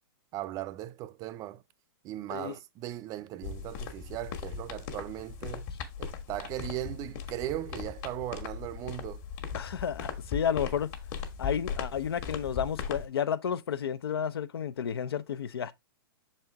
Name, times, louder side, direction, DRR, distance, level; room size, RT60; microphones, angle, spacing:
voice 1, 0.3-1.6 2.0-5.7 6.0-9.2, right 14 dB, 30° right, 0.4 m, -38 dB
sound 1, 3.4-13.1, left 6 dB, 45° left, 1.5 m, -38 dB
voice 2, 9.5-10.9 11.4-15.7, left 8 dB, 85° left, 0.7 m, -31 dB
6.6 x 4.4 x 3.5 m
hypercardioid pair, 135°, 12 cm